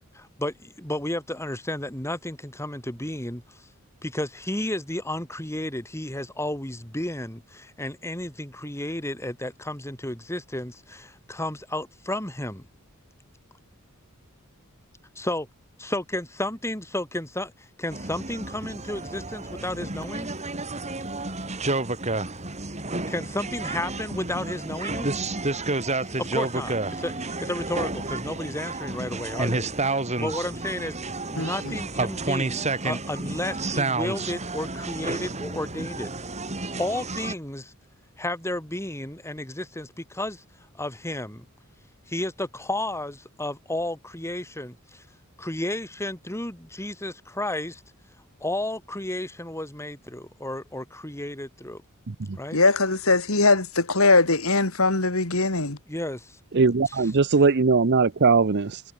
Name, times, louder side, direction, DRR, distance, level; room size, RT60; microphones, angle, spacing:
voice 1, 0.1-3.6 4.0-12.7 15.2-15.4 15.8-20.3 23.1-25.1 26.2-29.6 30.2-31.0 31.3-36.1 36.8-37.7 38.2-40.4 40.7-41.4 42.1-45.0 45.4-47.8 48.4-51.8 52.4-52.6 55.9-56.4 56.9-57.0, left 1 dB, 15° left, 6.7 m, -32 dB
sound 1, 17.9-37.3, right 2 dB, 30° right, 6.5 m, -30 dB
voice 2, 31.4-31.7 52.5-55.8, left 3 dB, 75° left, 3.7 m, -21 dB
voice 3, 56.5-58.8, right 4 dB, 50° right, 0.7 m, -20 dB
head